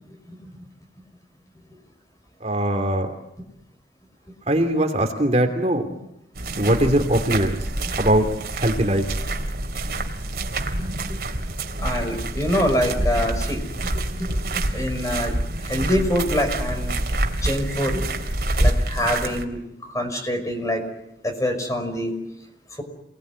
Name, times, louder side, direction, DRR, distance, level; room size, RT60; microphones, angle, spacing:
voice 1, 2.4-3.1 4.5-5.9 6.6-7.6 8.0-8.3 8.5-9.0, right 1 dB, 40° right, 5 dB, 2.9 m, -21 dB
sound 1, 6.4-19.4, right 1 dB, 55° right, 3.1 m, -26 dB
voice 2, 11.8-13.6 13.9-14.0 14.3-14.4 14.7-15.3 15.6-16.9 17.3-18.0 18.6-19.6 19.9-20.8 21.2-22.1, equal, 20° left, 5 dB, 5.6 m, -25 dB
29.0 x 20.0 x 9.7 m, 0.86 s
head